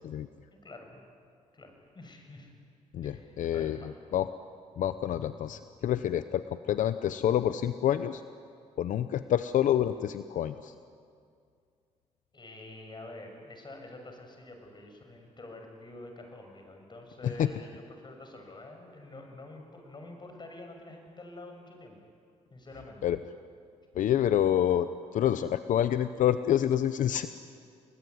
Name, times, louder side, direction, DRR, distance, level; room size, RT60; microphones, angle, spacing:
voice 1, 0.5-1.0 1.5-2.5 3.0-3.9 12.3-22.0 22.5-23.0, left 2 dB, 35° left, 4 dB, 6.7 m, -47 dB
voice 2, 2.9-3.8 4.1-4.3 4.8-8.2 8.8-10.7 17.2-17.5 23.0-23.2 23.9-27.3, left 10 dB, 80° left, 11 dB, 0.8 m, -27 dB
29.5 x 21.0 x 9.7 m, 2.3 s
cardioid pair, 80°, 13 cm